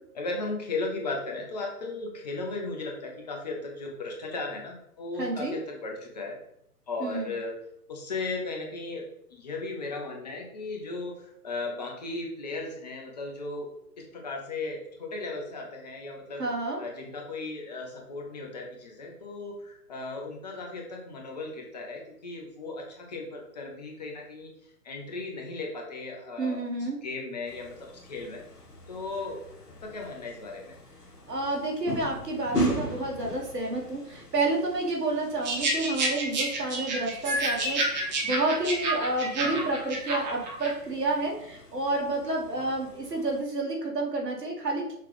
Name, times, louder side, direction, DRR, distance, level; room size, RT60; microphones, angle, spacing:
voice 1, 0.1-6.4 6.9-7.5 7.9-13.7 14.0-16.4 16.8-24.5 24.8-26.6 27.0-28.4 28.9-29.4 29.8-30.8 39.4-39.7 42.6-42.7, left 3 dB, 25° left, 0 dB, 0.6 m, -36 dB
voice 2, 5.2-5.6 7.0-7.3 16.4-16.8 26.4-27.0 31.3-45.0, right 2 dB, 80° right, -1 dB, 1.4 m, -30 dB
sound 1, 27.5-43.4, right 1 dB, 75° left, 1.3 m, -39 dB
sound 2, 35.4-40.7, right 2 dB, 30° right, 0.8 m, -29 dB
5.7 x 2.3 x 3.2 m, 0.76 s
figure-of-eight pair, 130°, 48 cm